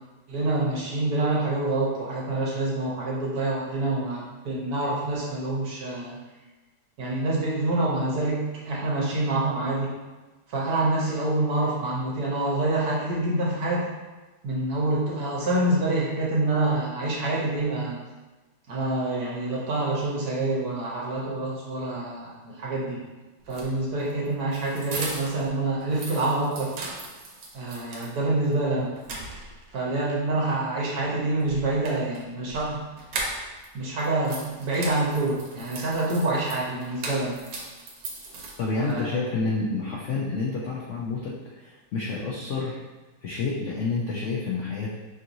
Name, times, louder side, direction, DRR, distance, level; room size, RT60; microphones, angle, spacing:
voice 1, 0.3-6.2 7.0-9.9 10.5-13.9 14.4-18.0 18.7-23.0 23.5-26.7 27.5-28.9 29.7-32.8 33.7-37.4 38.8-39.2, right 2 dB, 65° right, -5 dB, 1.4 m, -26 dB
sound 1, 23.4-25.5 25.8-28.1 28.5-28.6 29.0-29.8 31.4-33.7 34.0-38.9, right 2 dB, 90° right, 1.4 m, -38 dB
voice 2, 38.6-42.8 43.2-44.9, left 3 dB, 75° left, -4 dB, 0.7 m, -29 dB
5.4 x 2.9 x 2.6 m, 1.2 s
omnidirectional pair, 1.9 m